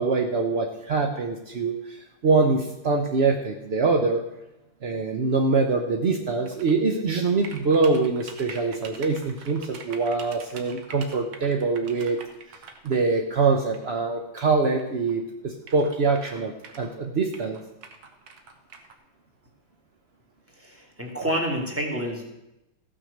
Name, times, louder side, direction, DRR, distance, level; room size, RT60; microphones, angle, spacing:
voice 1, 0.0-4.2 4.8-12.2 12.5-12.6 12.8-17.6, right 4 dB, 60° right, 4 dB, 0.6 m, -24 dB
sound 1, 6.5-6.7 7.4-13.0 13.7-13.9 14.8-14.9 15.1-15.2 15.6-17.0 17.3-18.9, right 5 dB, 80° right, 2.0 m, -44 dB
voice 2, 20.5-22.2, equal, 5° right, -1 dB, 1.9 m, -29 dB
15.0 x 6.2 x 6.5 m, 0.92 s
omnidirectional pair, 2.2 m